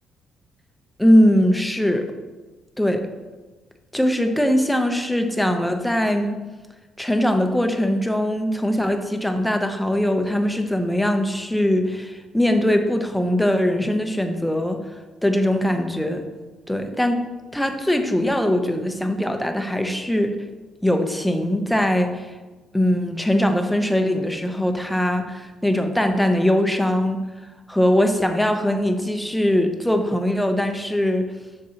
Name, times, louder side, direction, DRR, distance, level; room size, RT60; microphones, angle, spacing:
voice 1, 1.0-2.1 2.8-3.1 3.9-6.4 7.0-14.8 15.2-16.2 16.7-20.3 20.8-22.3 22.7-27.2 27.7-31.3, left 1 dB, 5° left, 6 dB, 0.6 m, -21 dB
6.6 x 6.5 x 2.8 m, 1.2 s
cardioid pair, 115°, 0 cm